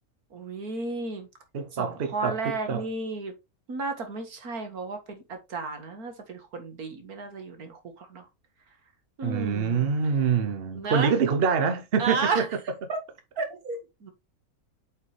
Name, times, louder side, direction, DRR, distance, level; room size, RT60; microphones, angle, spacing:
voice 1, 0.3-1.3 1.7-3.3 3.7-8.3 9.2-9.9 10.7-11.2 12.0-13.0 13.4-14.1, right 4 dB, 80° right, 2.2 m, -33 dB
voice 2, 1.5-2.8 9.2-12.4, right 6 dB, 45° right, 1.0 m, -25 dB
8.1 x 5.1 x 3.3 m
omnidirectional pair, 1.6 m